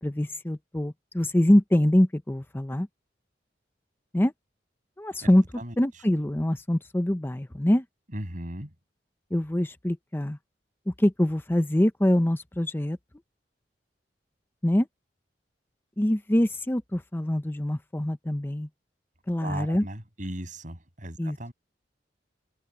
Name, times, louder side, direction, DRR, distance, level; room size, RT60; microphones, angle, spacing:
voice 1, 0.0-2.9 4.1-4.3 5.0-5.4 5.8-7.8 9.3-10.4 10.9-13.0 14.6-14.9 16.0-18.7 19.3-19.9 21.2-21.4, left 1 dB, 15° left, 0.6 m, -24 dB
voice 2, 8.1-8.7 19.4-21.5, right 1 dB, 45° right, 7.4 m, -37 dB
open air
head